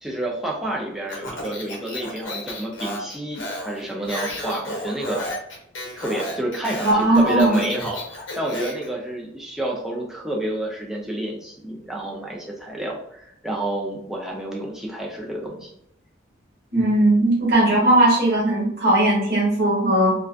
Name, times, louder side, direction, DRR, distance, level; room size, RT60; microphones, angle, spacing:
voice 1, 0.0-5.2 6.0-15.7 17.7-17.9, right 1 dB, ahead, -3 dB, 0.4 m, -29 dB
Speech, 1.1-8.9, left 1 dB, 70° left, 0.7 m, -32 dB
voice 2, 6.8-7.6 16.7-20.1, right 1 dB, 55° right, -5 dB, 1.1 m, -18 dB
2.4 x 2.2 x 2.4 m, 0.75 s
head